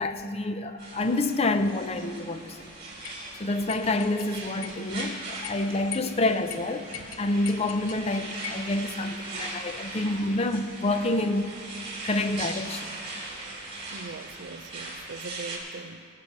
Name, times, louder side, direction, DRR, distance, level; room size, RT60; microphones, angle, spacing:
voice 1, 0.0-2.6 3.4-11.5 12.0-12.9, left 2 dB, 30° left, 0.5 m, -28 dB
sound 1, 0.8-15.6, right 2 dB, 30° right, 2.7 m, -40 dB
sound 2, 3.0-3.2 3.7-4.3 4.6-5.1 5.4-5.6 5.9-6.1 6.5-6.6 6.9-8.0 8.4-8.7, left 9 dB, 85° left, 0.8 m, -39 dB
voice 2, 13.9-16.1, right 4 dB, 60° right, 0.5 m, -41 dB
21.0 x 7.7 x 4.8 m
head